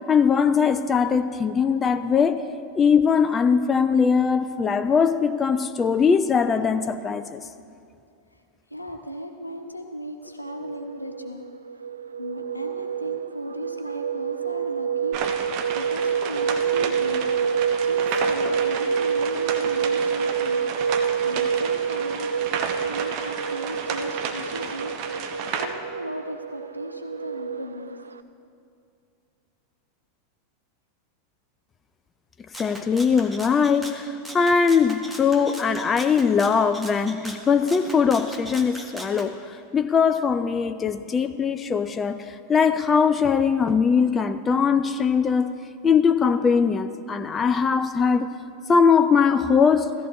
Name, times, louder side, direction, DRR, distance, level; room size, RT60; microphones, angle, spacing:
voice 1, 0.1-2.4 2.7-7.4 32.6-45.6 45.8-48.3 48.7-49.9, left 6 dB, 20° left, 0.4 m, -21 dB
voice 2, 8.7-11.5 12.2-15.2 15.7-17.3 17.8-20.6 21.2-22.3 22.8-24.9 25.6-28.0, equal, 90° left, 0.9 m, -36 dB
sound 1, 10.5-28.2, right 7 dB, 80° right, 0.4 m, -27 dB
sound 2, 15.1-25.7, right 7 dB, 45° right, 0.9 m, -32 dB
Rattle (instrument), 32.5-39.3, right 1 dB, 5° right, 1.2 m, -40 dB
16.0 x 14.0 x 3.1 m
figure-of-eight pair, 85°, 0 cm